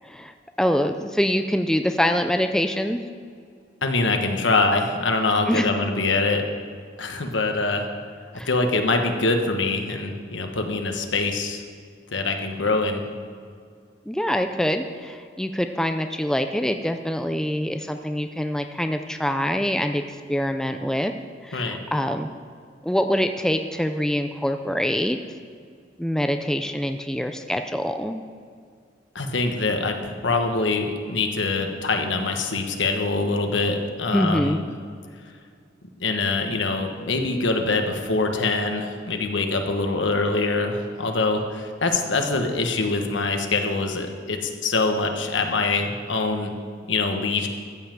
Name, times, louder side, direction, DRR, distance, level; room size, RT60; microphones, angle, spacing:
voice 1, 0.6-3.0 5.5-5.7 8.4-8.5 14.1-20.0 20.3-21.1 21.4-22.3 22.8-25.2 26.0-28.2 34.1-34.6, equal, 5° left, 7 dB, 0.4 m, -24 dB
voice 2, 3.8-6.4 7.0-7.9 8.4-11.6 12.1-13.0 21.5-21.8 29.1-34.6 36.0-46.5 46.9-47.5, left 3 dB, 75° left, 4 dB, 1.3 m, -24 dB
14.0 x 5.6 x 7.6 m, 2.2 s
head